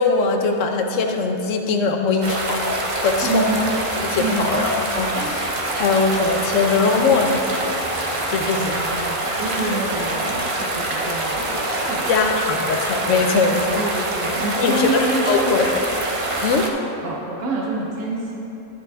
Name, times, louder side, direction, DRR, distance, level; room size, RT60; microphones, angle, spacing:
voice 1, 0.0-3.6 4.0-7.9 8.3-8.8 9.6-9.8 12.1-13.8 14.6-15.7 16.4-16.7, left 4 dB, 70° left, 4 dB, 1.0 m, -21 dB
sound 1, 2.2-16.7, right 1 dB, 45° right, 0.4 m, -25 dB
voice 2, 3.2-3.7 4.2-4.6 8.6-12.1 13.8-15.7 16.3-16.5 17.0-18.5, right 2 dB, 90° right, -3 dB, 1.3 m, -27 dB
9.8 x 9.8 x 2.3 m, 2.9 s
omnidirectional pair, 1.4 m